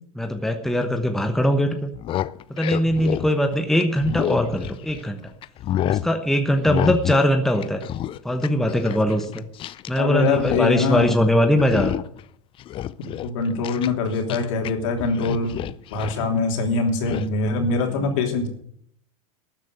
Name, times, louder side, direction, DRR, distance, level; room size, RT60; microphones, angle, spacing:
voice 1, 0.1-1.9 2.5-5.2 5.9-7.8 8.2-9.4 9.9-12.0, equal, ahead, 5 dB, 1.1 m, -21 dB
sound 1, 1.8-5.1 5.4-6.1 6.7-7.3 7.5-10.0 10.2-10.7 10.9-11.2 11.6-12.2 12.6-14.7 15.0-16.2 17.1-17.3, left 12 dB, 30° left, 0.5 m, -29 dB
voice 2, 10.0-11.1 13.2-18.5, left 3 dB, 60° left, 3 dB, 3.2 m, -23 dB
13.0 x 7.5 x 8.0 m, 0.70 s
hypercardioid pair, 100°, 18 cm